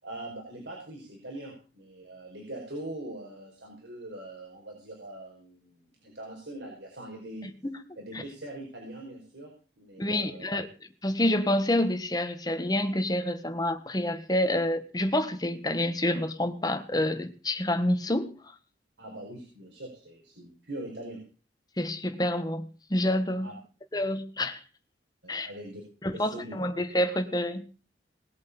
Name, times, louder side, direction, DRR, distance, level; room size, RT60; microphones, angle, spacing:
voice 1, 0.0-7.5 8.0-10.5 19.0-21.2 23.4-23.5 25.2-25.8 26.1-26.5, right 1 dB, 85° right, -1 dB, 4.9 m, -42 dB
voice 2, 7.4-7.8 8.1-8.2 10.0-10.7 11.0-18.5 21.8-23.5 23.9-24.6 25.3-25.5 26.0-27.7, left 1 dB, 20° left, 9 dB, 1.5 m, -28 dB
20.0 x 8.0 x 7.0 m, 0.38 s
head